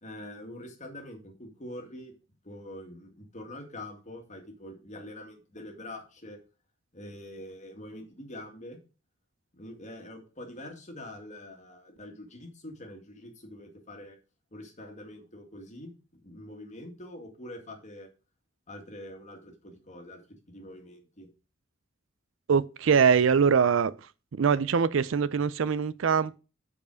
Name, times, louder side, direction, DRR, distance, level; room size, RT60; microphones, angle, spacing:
voice 1, 0.0-2.1 2.4-6.4 6.9-8.8 9.5-14.2 14.5-15.9 16.2-18.1 18.7-20.2 20.5-21.3, left 1 dB, 35° left, 2.0 m, -44 dB
voice 2, 22.5-23.9 24.4-26.4, right 6 dB, 65° right, 0.4 m, -23 dB
7.2 x 4.9 x 6.3 m
head